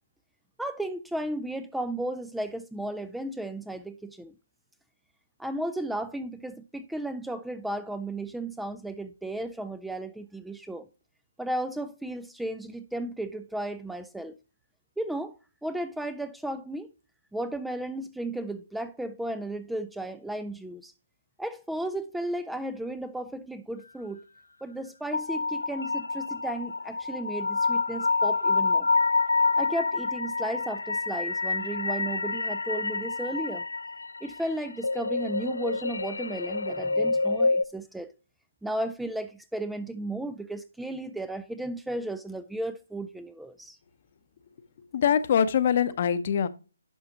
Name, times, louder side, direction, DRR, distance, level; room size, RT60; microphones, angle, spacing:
voice 1, 0.6-4.3 5.4-10.9 11.4-14.4 15.0-15.3 15.6-16.9 17.3-20.9 21.4-24.2 24.6-28.9 29.6-33.6 34.2-38.1 38.6-43.8, right 1 dB, ahead, 0.3 m, -34 dB
sound 1, 25.1-37.6, left 3 dB, 80° left, 0.3 m, -28 dB
voice 2, 44.9-46.5, left 8 dB, 45° left, 0.7 m, -23 dB
11.0 x 5.6 x 2.9 m
figure-of-eight pair, 145°, 0 cm